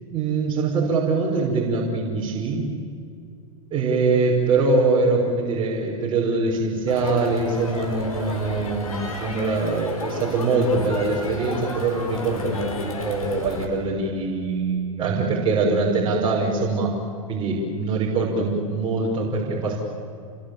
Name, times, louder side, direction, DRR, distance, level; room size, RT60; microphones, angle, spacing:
voice 1, 0.1-2.7 3.7-16.9 17.3-19.8, right 3 dB, 25° right, -4 dB, 6.0 m, -23 dB
Crowd, 6.9-13.6, left 2 dB, 85° left, 5.1 m, -32 dB
29.0 x 22.5 x 8.9 m, 2.3 s
hypercardioid pair, 100°, 18 cm